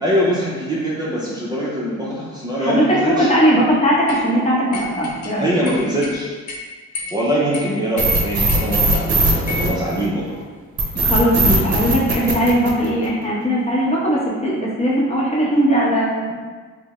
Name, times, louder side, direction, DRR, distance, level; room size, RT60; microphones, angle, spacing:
voice 1, 0.0-3.3 5.4-6.4 7.1-10.2 10.9-11.0, equal, 15° right, -7 dB, 0.6 m, -22 dB
voice 2, 2.6-5.5 11.0-16.4, equal, 20° left, -6 dB, 0.9 m, -19 dB
sound 1, 4.1-4.2 4.7-5.3 5.6-6.2 6.5-6.6 6.9-7.2 7.5-7.6 8.0-9.0 9.5-9.7, left 3 dB, 70° left, 0.6 m, -31 dB
sound 2, 8.0-10.3 10.8-13.2, right 2 dB, 55° right, 0.7 m, -18 dB
3.4 x 2.1 x 3.0 m, 1.4 s
cardioid pair, 90°, 30 cm